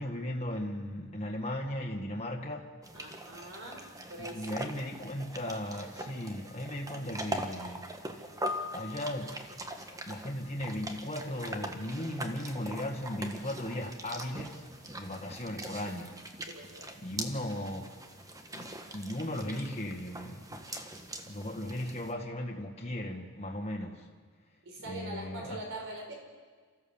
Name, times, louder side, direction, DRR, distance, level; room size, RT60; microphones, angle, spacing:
voice 1, 0.0-2.7 4.2-8.3 8.7-9.5 10.1-16.2 16.9-18.0 18.5-20.7 21.2-24.1 24.8-25.6, left 1 dB, 30° left, 1.9 m, -37 dB
sound 1, 2.8-22.1, right 1 dB, 15° right, 1.4 m, -42 dB
voice 2, 2.9-3.8 4.1-4.7 16.5-16.9 24.6-26.1, right 1 dB, 60° right, 5.0 m, -43 dB
29.5 x 14.5 x 7.3 m
head